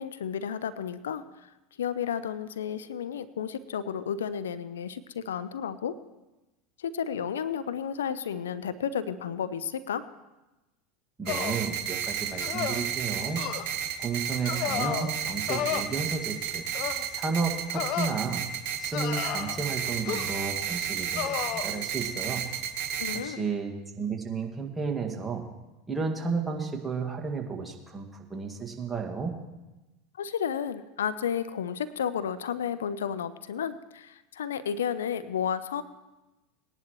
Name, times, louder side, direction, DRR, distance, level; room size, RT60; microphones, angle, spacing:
voice 1, 0.0-1.5 1.8-6.0 6.8-10.1 23.0-23.5 30.2-35.8, left 8 dB, 80° left, 15 dB, 0.5 m, -32 dB
voice 2, 11.2-13.4 14.0-16.6 17.1-18.5 18.8-22.4 23.1-25.4 25.9-29.4, right 5 dB, 15° right, 0 dB, 1.8 m, -32 dB
sound 1, 11.3-11.7 12.4-12.9 13.4-13.6 14.4-15.1 15.5-15.8 16.7-17.0 17.7-18.1 18.9-19.6 20.1-20.5 21.1-21.7, left 10 dB, 55° left, 0.8 m, -32 dB
sound 2, 11.3-23.2, right 8 dB, 60° right, 1.4 m, -32 dB
19.5 x 10.5 x 3.1 m, 1.1 s
hypercardioid pair, 85°, 0 cm